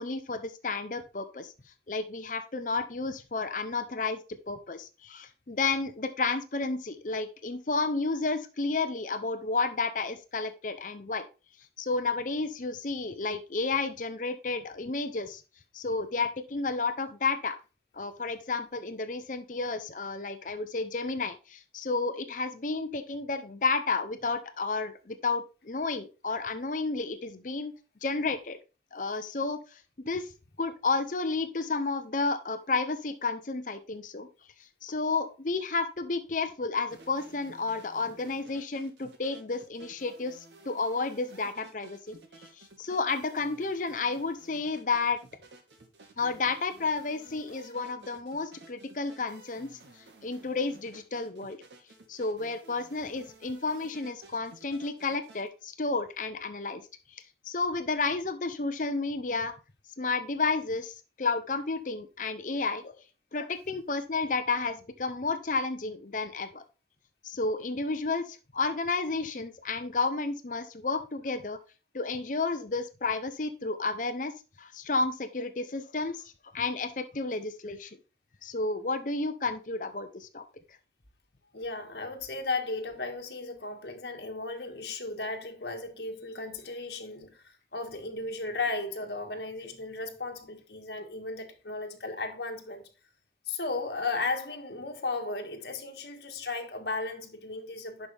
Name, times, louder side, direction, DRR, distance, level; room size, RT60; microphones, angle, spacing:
voice 1, 0.0-1.5 1.9-4.2 4.5-11.2 11.8-15.4 15.7-17.6 17.9-27.7 28.0-28.6 28.9-29.6 30.0-30.3 30.6-34.3 34.8-42.2 42.6-45.2 46.2-49.7 50.2-51.6 52.1-56.8 57.4-59.5 60.0-62.9 63.3-66.6 67.2-71.6 71.9-74.3 74.6-77.9 78.4-80.4, left 3 dB, 45° left, 0.7 m, -31 dB
sound 1, 36.9-55.5, right 2 dB, 80° right, 1.7 m, -54 dB
voice 2, 81.5-92.9 93.5-98.1, left 3 dB, 65° left, 1.6 m, -35 dB
11.0 x 5.4 x 3.4 m
head